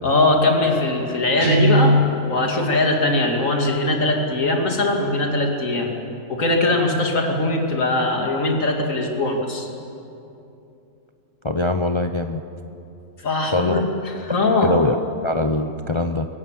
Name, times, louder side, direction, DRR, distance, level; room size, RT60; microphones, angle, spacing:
voice 1, 0.0-2.0 2.3-5.9 6.3-9.7 13.2-14.8, left 2 dB, 60° left, 1 dB, 2.9 m, -21 dB
Guitar, 1.4-2.2, equal, 90° right, 3.0 m, -17 dB
voice 2, 11.4-12.4 13.5-13.9 14.3-16.3, left 2 dB, 40° left, 7 dB, 0.4 m, -23 dB
25.0 x 18.0 x 7.5 m, 2.7 s
omnidirectional pair, 1.5 m